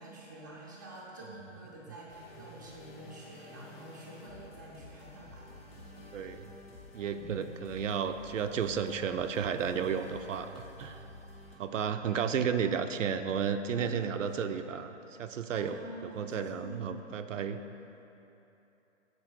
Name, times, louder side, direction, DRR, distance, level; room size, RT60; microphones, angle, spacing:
voice 1, 0.0-6.2 7.1-7.5 12.1-12.4 13.7-14.6 15.4-17.0, right 1 dB, 15° right, -5 dB, 0.4 m, -48 dB
sound 1, 2.1-11.6, left 1 dB, 55° left, 1.5 m, -51 dB
voice 2, 6.1-6.5 6.9-11.0 11.6-14.9 15.2-15.8 16.0-17.6, right 7 dB, 85° right, 8 dB, 0.6 m, -32 dB
6.9 x 4.7 x 5.9 m, 2.9 s
hypercardioid pair, 165°, 37 cm